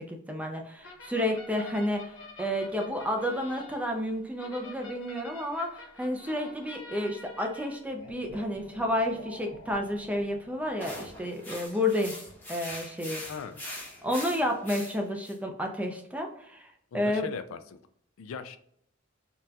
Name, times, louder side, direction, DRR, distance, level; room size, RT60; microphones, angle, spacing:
voice 1, 0.0-2.1 2.4-12.1 12.5-13.2 14.0-16.7 16.9-17.3, left 1 dB, 5° right, 2 dB, 0.4 m, -31 dB
sound 1, 0.8-11.2, left 2 dB, 70° left, 0.8 m, -48 dB
sound 2, 10.8-15.4, left 1 dB, 10° left, 0.9 m, -42 dB
voice 2, 13.3-13.6 16.9-17.8 18.2-18.6, left 6 dB, 90° left, 11 dB, 0.3 m, -39 dB
4.0 x 2.3 x 2.2 m, 0.69 s
head